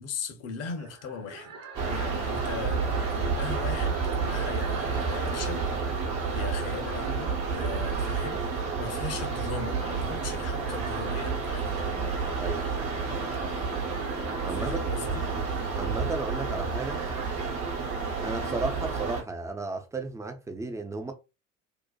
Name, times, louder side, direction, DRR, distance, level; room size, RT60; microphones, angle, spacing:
voice 1, 0.0-1.5 1.9-5.7 6.3-11.9 14.6-15.3, left 5 dB, 40° left, 0.7 m, -38 dB
sound 1, 0.8-18.8, right 4 dB, 40° right, 0.8 m, -47 dB
sound 2, 1.7-19.2, right 5 dB, 60° right, 1.0 m, -30 dB
Bowed string instrument, 11.9-17.1, left 5 dB, 80° left, 0.5 m, -46 dB
voice 2, 12.3-12.7 14.4-14.9 15.8-17.0 18.2-21.1, right 3 dB, 10° right, 0.4 m, -34 dB
2.6 x 2.1 x 2.2 m
figure-of-eight pair, 60°, 38 cm